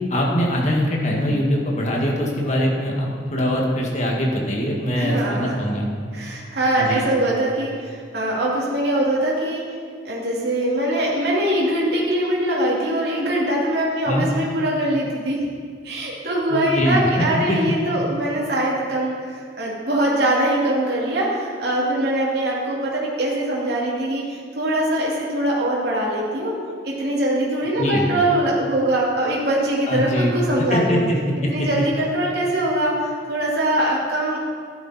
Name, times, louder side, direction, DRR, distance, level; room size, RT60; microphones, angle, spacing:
voice 1, 0.1-5.9 6.8-7.0 14.1-14.3 16.5-17.6 27.8-28.1 29.9-30.3 30.7-31.7, equal, 40° left, -1 dB, 1.9 m, -22 dB
voice 2, 4.9-5.6 6.1-9.6 10.0-15.4 15.8-26.5 26.8-31.0 31.5-34.4, right 1 dB, 60° right, -5 dB, 2.6 m, -22 dB
13.0 x 11.0 x 4.3 m, 2.1 s
head